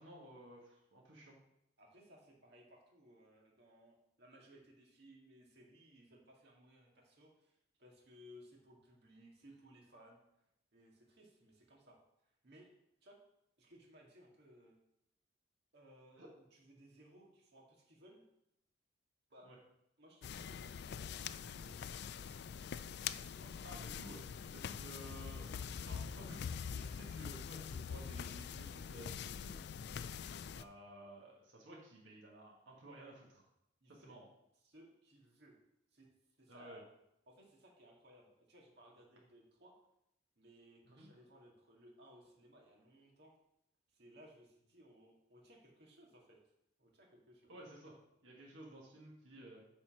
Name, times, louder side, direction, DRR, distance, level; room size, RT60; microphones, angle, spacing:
voice 1, 0.0-1.3 16.2-16.3 19.4-19.6 23.6-24.2 24.5-26.4 26.7-29.6 30.5-33.4 33.9-34.2 36.5-36.8 40.9-41.1 47.5-47.9 48.2-49.7, right 1 dB, 85° right, -3 dB, 1.7 m, -54 dB
voice 2, 1.8-10.2 10.7-12.0 12.2-12.7 13.0-13.2 13.6-14.8 15.7-18.2 19.3-19.5 20.0-22.0 23.3-23.5 26.9-27.1 33.8-34.2 34.6-35.6 35.9-36.1 36.4-36.8 37.3-39.8 40.4-43.3 43.9-46.4 46.8-47.6, equal, 60° right, -1 dB, 2.1 m, -62 dB
sound 1, 20.2-30.6, left 7 dB, 60° left, 0.3 m, -44 dB
9.0 x 4.3 x 5.8 m, 0.82 s
head